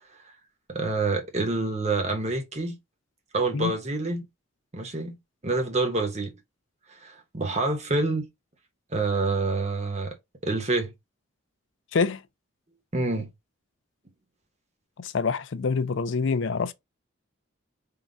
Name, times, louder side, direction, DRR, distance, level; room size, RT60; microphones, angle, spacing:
voice 1, 0.7-2.8 3.3-4.2 4.7-6.3 7.0-8.3 8.9-10.2 10.4-10.9 12.9-13.3, right 3 dB, 30° right, 0.9 m, -27 dB
voice 2, 15.0-16.7, left 4 dB, 60° left, 0.4 m, -26 dB
3.7 x 2.3 x 3.9 m
head